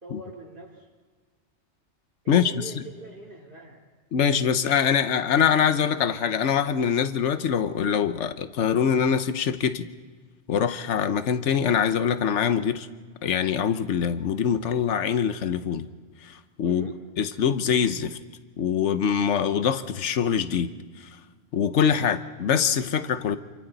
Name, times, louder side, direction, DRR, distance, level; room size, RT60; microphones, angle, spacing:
voice 1, 0.0-0.9 2.2-3.8 16.6-17.0, right 1 dB, 50° right, -2 dB, 2.7 m, -42 dB
voice 2, 2.3-2.6 4.1-9.8 10.5-12.9 13.2-15.9 16.2-16.9 17.2-18.2 18.6-20.7 21.5-23.4, left 7 dB, 90° left, 11 dB, 1.2 m, -24 dB
28.5 x 26.0 x 4.0 m, 1.5 s
omnidirectional pair, 1.2 m